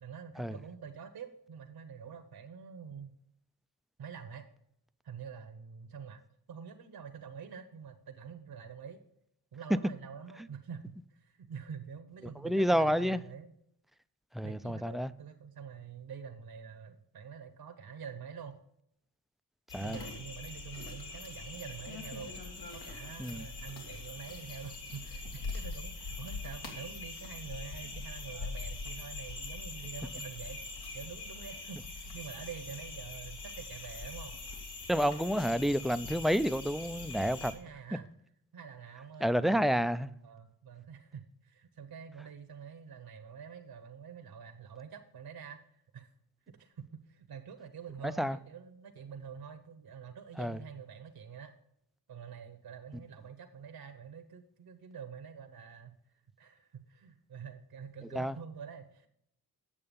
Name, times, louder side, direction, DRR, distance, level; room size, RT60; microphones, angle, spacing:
voice 1, 0.0-3.1 4.0-4.5 5.0-6.2 6.5-9.0 9.5-13.5 14.4-18.5 19.8-22.4 22.7-30.6 30.9-34.4 37.4-38.1 38.5-39.3 40.2-46.1 46.5-51.5 52.1-59.1, right 7 dB, 65° right, 1.0 m, -47 dB
voice 2, 12.4-13.2 14.3-15.1 19.7-20.0 23.2-23.4 34.9-37.5 39.2-40.1 48.0-48.4 50.4-50.6 58.1-58.3, equal, ahead, 0.3 m, -29 dB
sound 1, 19.7-37.5, left 3 dB, 80° left, 2.2 m, -43 dB
8.6 x 6.8 x 5.2 m
cardioid pair, 65°, 39 cm